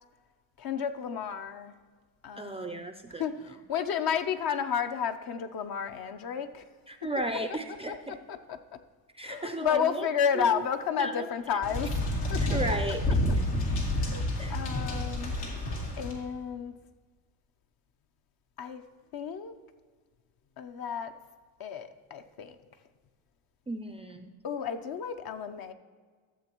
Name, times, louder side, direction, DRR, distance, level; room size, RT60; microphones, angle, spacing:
voice 1, 0.6-1.7 2.2-2.8 3.2-6.6 7.0-7.1 7.9-8.0 8.3-8.8 9.2-12.0 12.3-12.4 13.8-15.3 16.0-16.7 18.6-18.8 19.1-19.5 20.6-21.2 21.6-22.6 24.4-25.7, left 7 dB, 50° left, 9 dB, 0.7 m, -32 dB
voice 2, 2.4-3.2 6.9-8.2 9.1-10.1 10.3-10.6 11.0-11.3 12.4-13.0 14.4-14.6 23.7-24.3, right 2 dB, 15° right, 6 dB, 0.4 m, -34 dB
sound 1, 11.6-16.1, left 1 dB, 85° left, 2.3 m, -29 dB
13.0 x 7.1 x 3.0 m, 1.5 s
supercardioid pair, 80°, 48 cm